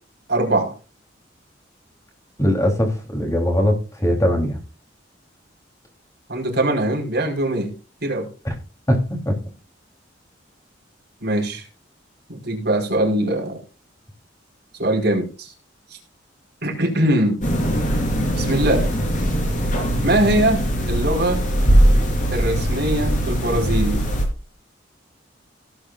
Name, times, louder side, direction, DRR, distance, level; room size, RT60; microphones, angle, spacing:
voice 1, 0.3-0.8 6.3-7.7 8.0-8.3 11.2-11.7 12.3-13.6 14.8-15.5 16.6-17.4 18.4-18.9 20.0-21.4 22.3-24.0, right 1 dB, 60° right, 1 dB, 4.6 m, -21 dB
voice 2, 2.4-4.6 8.9-9.4, equal, 15° left, 2 dB, 3.4 m, -20 dB
sound 1, 17.4-24.3, equal, 45° left, 4.2 m, -20 dB
17.5 x 8.4 x 2.5 m, 0.33 s
head